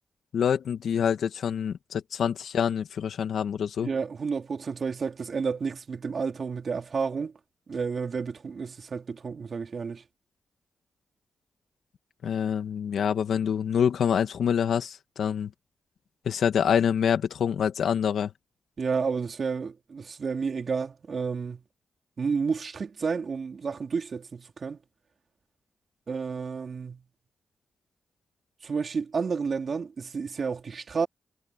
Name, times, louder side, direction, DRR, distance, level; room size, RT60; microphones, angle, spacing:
voice 1, 0.3-3.9 12.2-15.5 16.2-18.3, left 8 dB, 80° left, 2.5 m, -26 dB
voice 2, 3.8-7.3 7.7-10.0 18.8-21.6 22.2-24.8 26.1-27.0 28.6-31.1, right 5 dB, 55° right, 3.7 m, -31 dB
cardioid pair, 60°, 0 cm